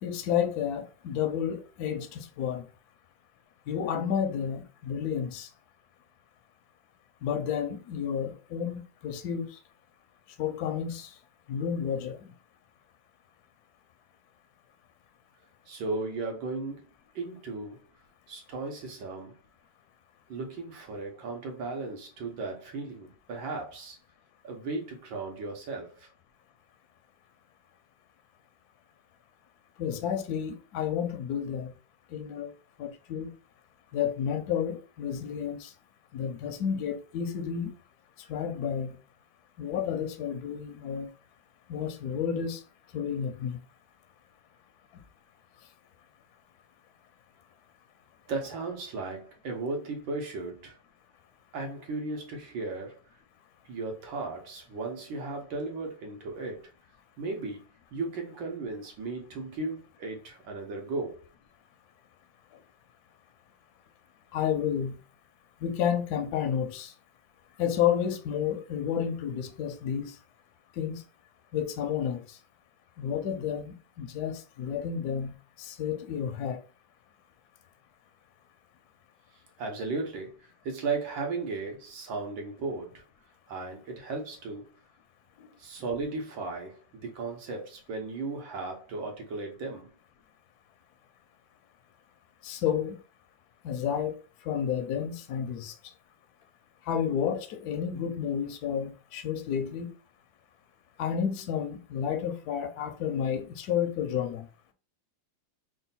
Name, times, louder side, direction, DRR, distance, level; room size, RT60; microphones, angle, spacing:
voice 1, 0.0-2.7 3.7-5.5 7.2-9.5 10.4-11.1 11.5-12.3 29.8-31.7 32.1-32.5 32.8-33.3 33.9-35.7 36.1-37.7 38.3-39.0 39.6-41.1 41.7-42.6 42.9-43.6 64.3-65.0 65.6-66.9 67.6-70.2 70.8-71.0 71.5-72.4 73.0-76.6 85.4-85.5 92.4-93.0 93.6-94.2 94.5-95.8 96.9-99.9 101.0-104.5, left 8 dB, 70° left, 0.9 m, -31 dB
voice 2, 15.7-16.9 17.2-17.9 18.3-19.4 20.3-24.0 24.4-26.1 48.3-50.8 51.5-53.0 53.7-56.7 57.2-61.3 79.6-83.0 83.5-84.7 85.6-89.9, right 3 dB, 85° right, 1.8 m, -36 dB
3.8 x 2.3 x 4.0 m
omnidirectional pair, 2.1 m